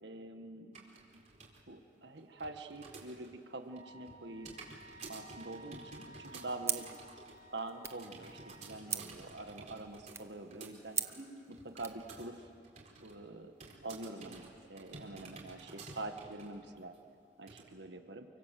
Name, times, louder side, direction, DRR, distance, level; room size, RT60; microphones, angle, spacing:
voice 1, 0.0-0.9 1.7-4.6 5.1-6.9 7.5-11.0 11.5-12.5 13.0-13.5 13.8-16.9 17.4-18.3, right 2 dB, 65° right, 6 dB, 1.7 m, -45 dB
sound 1, 0.7-1.6 1.9-3.3 3.6-12.4 12.6-13.2 13.6-16.6 16.9-17.0 17.5-17.6, right 3 dB, 40° right, 4.5 m, -52 dB
Wind instrument woodwind instrument, 3.7-8.6, right 1 dB, 90° right, 2.9 m, -56 dB
sound 2, 6.6-12.0, right 5 dB, 15° right, 0.8 m, -42 dB
29.0 x 25.0 x 7.8 m, 2.4 s
head